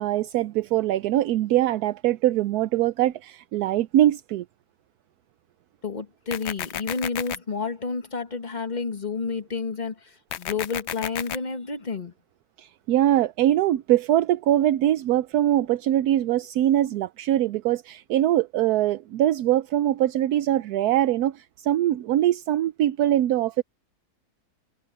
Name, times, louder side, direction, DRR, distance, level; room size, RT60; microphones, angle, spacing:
voice 1, 0.0-4.4 12.6-23.6, right 12 dB, 80° right, 1.1 m, -22 dB
voice 2, 5.8-12.1, left 4 dB, 30° left, 1.4 m, -30 dB
sound 1, 6.3-7.4 10.3-11.4, left 11 dB, 65° left, 0.7 m, -32 dB
omnidirectional pair, 1.6 m